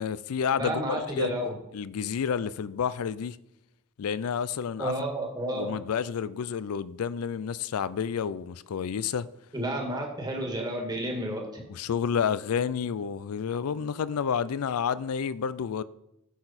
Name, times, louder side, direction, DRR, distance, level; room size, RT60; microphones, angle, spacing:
voice 1, 0.0-1.3 1.7-3.4 4.0-4.9 5.5-9.3 11.7-15.8, left 7 dB, 75° left, 0.4 m, -30 dB
voice 2, 0.6-1.6 4.8-5.7 9.5-11.6, right 1 dB, 20° right, 1.7 m, -31 dB
10.0 x 6.8 x 4.2 m
head